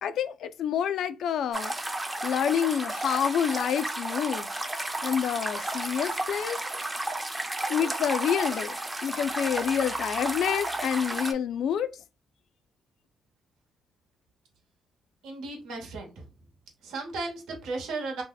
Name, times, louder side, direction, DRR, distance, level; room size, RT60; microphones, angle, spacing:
voice 1, 0.0-1.7 2.2-4.5 5.0-6.6 7.7-8.8 9.0-11.9, left 8 dB, 70° left, 0.3 m, -28 dB
sound 1, 1.5-11.3, right 1 dB, 15° right, 0.5 m, -32 dB
voice 2, 15.2-16.2 16.8-18.2, right 3 dB, 85° right, 1.1 m, -35 dB
2.7 x 2.1 x 3.9 m
cardioid pair, 90°, 0 cm